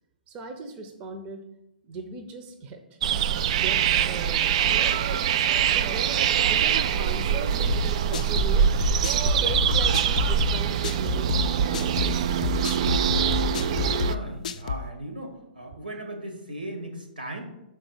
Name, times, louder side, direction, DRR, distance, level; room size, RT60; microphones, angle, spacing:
voice 1, 0.3-1.5 1.8-3.0 3.5-5.3 5.7-8.7 9.1-12.0, right 3 dB, 25° right, 6 dB, 0.7 m, -38 dB
sound 1, 3.0-14.1, right 9 dB, 45° right, 0.3 m, -24 dB
sound 2, 7.7-14.9, left 7 dB, 50° left, 0.4 m, -29 dB
voice 2, 14.0-17.4, right 1 dB, 85° right, 2 dB, 1.9 m, -37 dB
6.5 x 4.6 x 6.2 m, 0.90 s
figure-of-eight pair, 115°, 5 cm